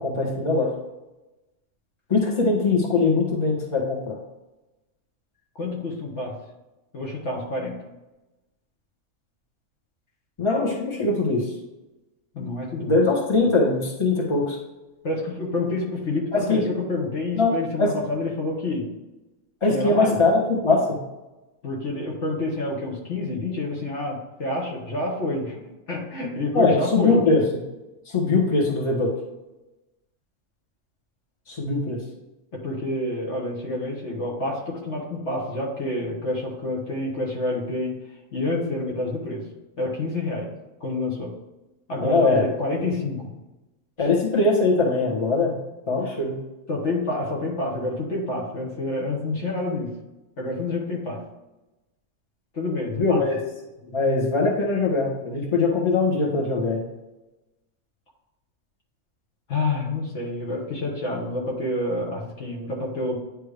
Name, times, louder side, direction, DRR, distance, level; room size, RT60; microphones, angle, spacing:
voice 1, 0.0-0.7 2.1-4.2 10.4-11.4 12.8-14.6 16.3-16.7 17.3-17.9 19.6-21.0 26.5-27.4 28.1-29.1 31.5-32.0 42.0-42.4 44.0-45.5 45.9-46.3 53.0-53.3 53.9-56.8, left 3 dB, 20° left, -3 dB, 1.4 m, -21 dB
voice 2, 5.5-6.3 6.9-7.8 12.3-13.0 15.0-18.9 19.7-20.2 21.6-25.6 25.9-27.2 32.5-37.9 38.3-39.4 39.8-40.5 40.8-41.3 41.9-43.3 44.0-44.1 45.9-46.2 46.7-49.9 50.4-51.2 52.5-53.2 59.5-63.2, left 2 dB, 55° left, -3 dB, 1.5 m, -28 dB
9.8 x 3.3 x 3.3 m, 1.0 s
omnidirectional pair, 1.5 m